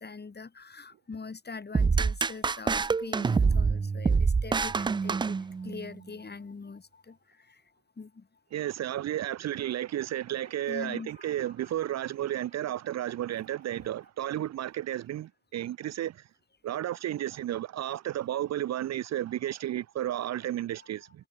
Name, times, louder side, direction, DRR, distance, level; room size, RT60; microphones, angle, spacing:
voice 1, 0.0-7.6 8.0-8.3 10.4-12.0 12.3-12.5 14.2-14.4 20.8-21.1, left 4 dB, 30° left, 6.8 m, -44 dB
sound 1, 1.7-5.9, right 5 dB, 15° right, 0.4 m, -26 dB
voice 2, 8.5-16.2 16.6-21.1, right 12 dB, 50° right, 1.1 m, -32 dB
figure-of-eight pair, 45°, 34 cm